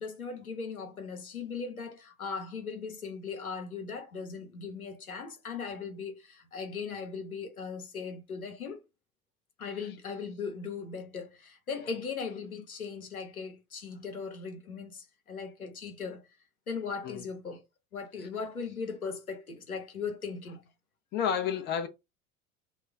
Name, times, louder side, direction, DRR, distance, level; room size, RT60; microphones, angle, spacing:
voice 1, 0.0-8.8 9.6-16.3 16.7-17.6 17.9-20.6, left 5 dB, 85° left, 0.7 m, -38 dB
voice 2, 21.1-21.9, left 8 dB, 25° left, 0.5 m, -30 dB
2.2 x 2.0 x 3.4 m
figure-of-eight pair, 80°, 42 cm